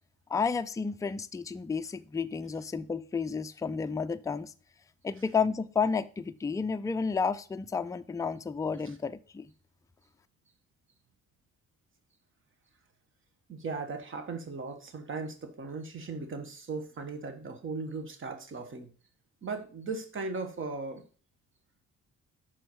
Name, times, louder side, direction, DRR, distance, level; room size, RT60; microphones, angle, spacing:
voice 1, 0.3-4.5 5.0-9.5, left 5 dB, 10° left, 0.4 m, -31 dB
voice 2, 13.5-18.9 19.4-21.0, right 4 dB, 40° right, 1.5 m, -37 dB
6.2 x 4.6 x 6.3 m
cardioid pair, 90°, 30 cm